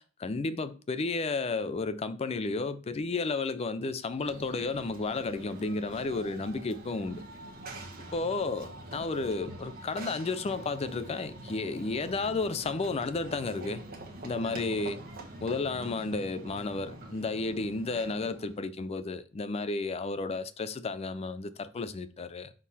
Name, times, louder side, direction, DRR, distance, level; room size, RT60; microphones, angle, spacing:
voice 1, 0.0-7.2 8.1-13.8 14.2-15.0 15.4-22.5, left 3 dB, 30° left, 0.4 m, -32 dB
Run / Train, 4.1-18.6, right 2 dB, 45° right, 1.2 m, -45 dB
6.4 x 3.7 x 4.0 m
head